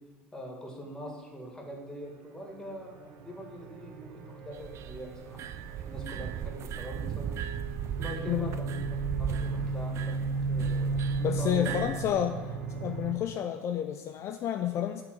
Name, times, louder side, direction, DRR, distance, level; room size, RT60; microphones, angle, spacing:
voice 1, 0.3-5.4 5.8-7.3 8.0-8.8 9.2-10.2 10.5-11.8, equal, 10° left, -1 dB, 2.0 m, -42 dB
sound 1, 2.3-13.1, right 3 dB, 70° right, 0.7 m, -35 dB
sound 2, 4.5-12.1, right 9 dB, 50° right, 0.3 m, -37 dB
voice 2, 11.2-12.4 12.8-15.0, left 10 dB, 50° left, 6 dB, 0.4 m, -30 dB
5.9 x 3.7 x 6.1 m, 1.3 s
hypercardioid pair, 80°, 6 cm